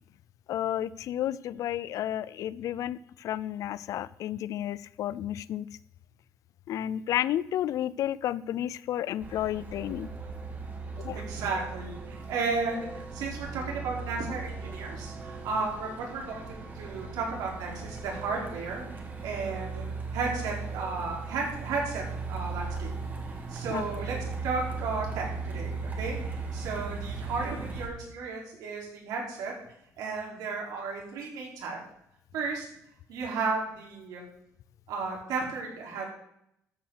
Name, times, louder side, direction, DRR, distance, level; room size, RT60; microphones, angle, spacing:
voice 1, 0.5-5.7 6.7-10.1 11.0-11.2 23.7-23.8, left 11 dB, 65° left, 19 dB, 0.4 m, -32 dB
Truck, 9.2-27.9, right 4 dB, 30° right, 1.8 m, -38 dB
voice 2, 11.1-19.9 20.1-22.9 23.3-26.2 26.5-29.5 30.0-31.8 32.3-32.7 33.1-34.2 34.9-36.0, right 4 dB, 90° right, -2 dB, 4.4 m, -34 dB
13.5 x 5.9 x 6.5 m, 0.75 s
cardioid pair, 145°, 6 cm